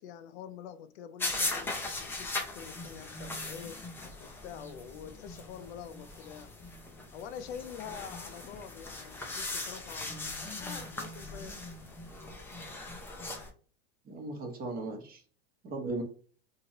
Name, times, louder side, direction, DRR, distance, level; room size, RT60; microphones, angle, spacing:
voice 1, 0.0-3.8 4.2-6.6 7.1-11.6, left 8 dB, 85° left, 0.5 m, -46 dB
sound 1, 1.2-13.5, left 2 dB, 5° left, 0.3 m, -39 dB
voice 2, 14.0-15.2 15.6-16.0, right 2 dB, 30° right, 0.8 m, -37 dB
3.0 x 2.7 x 2.8 m
supercardioid pair, 135°, 32 cm